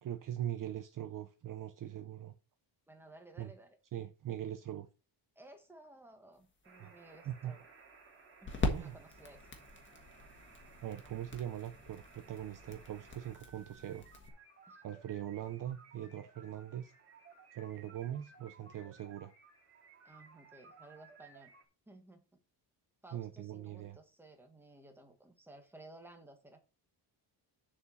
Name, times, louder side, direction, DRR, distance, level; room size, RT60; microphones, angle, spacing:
voice 1, 0.0-2.3 3.4-3.5 3.9-4.9 6.8-6.9 7.3-7.5 8.7-9.0 10.8-14.1 14.8-16.9 17.5-19.3 23.1-24.0, right 11 dB, 45° right, 0.6 m, -41 dB
voice 2, 2.9-3.8 5.3-7.7 8.4-8.5 8.8-9.5 14.7-14.8 20.0-21.5 21.9-22.2 23.0-26.6, right 2 dB, 5° right, 1.4 m, -56 dB
sound 1, 6.4-14.3, left 2 dB, 25° left, 1.5 m, -42 dB
sound 2, 6.6-21.6, right 4 dB, 25° right, 2.4 m, -59 dB
7.0 x 4.6 x 6.9 m
cardioid pair, 180°, 46 cm